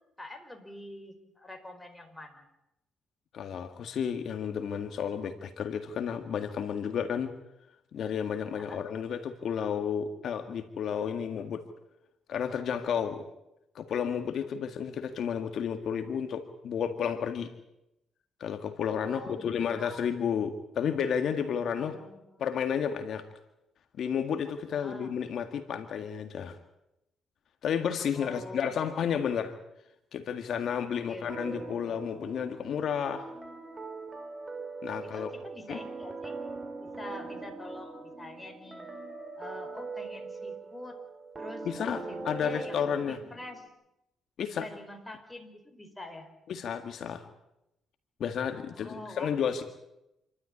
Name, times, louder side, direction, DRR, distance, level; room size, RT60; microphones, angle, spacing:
voice 1, 0.2-2.5 8.5-8.8 19.1-20.4 21.7-22.5 24.7-25.2 28.1-29.2 31.1-32.0 35.0-36.4 36.8-38.9 39.4-41.0 41.4-43.7 44.5-46.3 48.7-49.3, left 1 dB, 10° left, 5 dB, 5.1 m, -46 dB
voice 2, 3.3-7.3 7.9-11.6 12.3-13.2 13.8-17.5 18.4-21.9 22.4-23.3 24.0-26.6 27.6-29.5 30.1-33.3 34.8-35.3 35.7-35.8 41.7-43.2 44.4-44.7 46.5-47.2 48.2-49.6, left 7 dB, 65° left, 7 dB, 1.8 m, -32 dB
sound 1, 31.3-43.7, right 3 dB, 25° right, 3.7 m, -42 dB
28.0 x 13.0 x 9.9 m, 0.87 s
cardioid pair, 90°, 0 cm